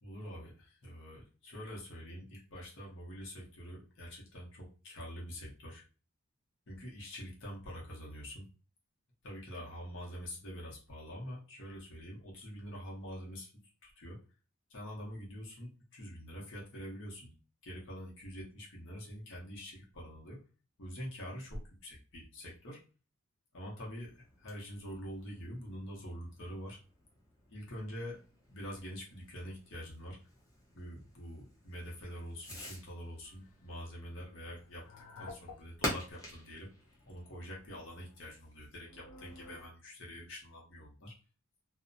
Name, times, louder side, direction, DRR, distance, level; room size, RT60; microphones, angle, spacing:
voice 1, 0.0-5.8 6.7-8.4 9.2-13.5 13.8-14.2 14.7-17.3 17.6-20.4 20.8-22.8 23.5-26.8 27.5-28.2 28.5-30.2 30.7-34.9 35.2-36.7 37.0-41.1, equal, 55° left, -3 dB, 0.8 m, -45 dB
Fireworks, 23.8-38.4, left 1 dB, 15° left, 0.7 m, -48 dB
sound 1, 33.2-33.5 34.6-36.0 36.4-36.5 36.9-37.2 37.9-39.7, left 3 dB, 80° left, 0.4 m, -52 dB
2.6 x 2.0 x 2.6 m, 0.34 s
head